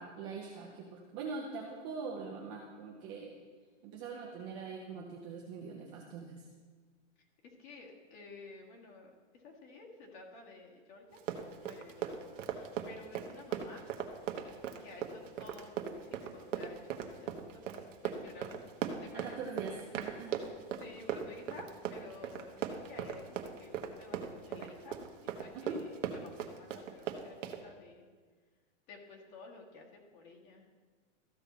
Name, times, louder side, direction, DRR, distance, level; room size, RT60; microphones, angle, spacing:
voice 1, 0.0-3.3 3.8-6.5 19.1-20.4 25.5-25.8, right 5 dB, 15° right, -1 dB, 0.4 m, -43 dB
voice 2, 7.4-11.2 11.6-13.8 14.8-17.6 18.0-18.6 19.0-19.9 20.4-28.1 28.9-30.7, left 3 dB, 40° left, 0 dB, 1.8 m, -53 dB
Run, 11.1-27.6, right 8 dB, 85° right, 1.2 m, -38 dB
14.0 x 5.6 x 4.1 m, 1.5 s
hypercardioid pair, 160°, 37 cm